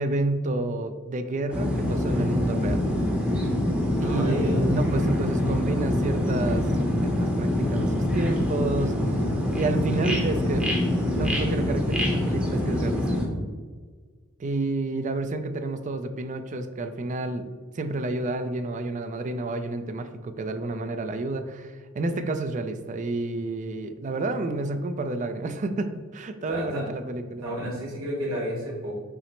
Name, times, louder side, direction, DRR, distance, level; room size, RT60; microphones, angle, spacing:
voice 1, 0.0-2.8 4.0-6.7 7.0-9.2 9.5-10.7 11.1-13.0 14.4-17.5 17.7-27.4, right 2 dB, 35° right, 8 dB, 0.3 m, -30 dB
sound 1, 1.5-13.3, left 1 dB, 5° right, 0.7 m, -25 dB
voice 2, 4.0-4.8 26.5-26.8 27.3-28.9, equal, 70° right, -5 dB, 1.3 m, -31 dB
5.7 x 2.0 x 4.3 m, 1.5 s
head